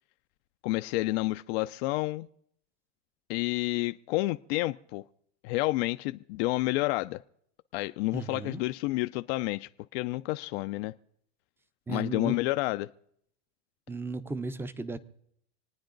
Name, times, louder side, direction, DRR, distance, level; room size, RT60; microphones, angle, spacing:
voice 1, 0.6-2.3 3.3-5.0 5.4-7.2 7.7-10.9 11.9-12.9, left 20 dB, 65° left, 10 dB, 0.5 m, -30 dB
voice 2, 8.1-8.6 11.9-12.3 13.9-15.0, right 3 dB, 5° right, 13 dB, 0.6 m, -35 dB
27.0 x 9.5 x 3.9 m, 0.70 s
supercardioid pair, 140°, 34 cm